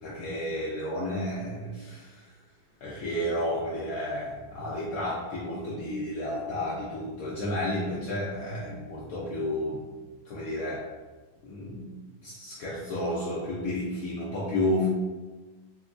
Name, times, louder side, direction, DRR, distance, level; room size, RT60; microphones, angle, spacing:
voice 1, 0.0-2.1 2.8-9.8 10.3-10.8 11.4-11.9 12.2-14.9, left 1 dB, 90° left, -7 dB, 0.7 m, -31 dB
4.1 x 2.1 x 2.4 m, 1.3 s
omnidirectional pair, 2.2 m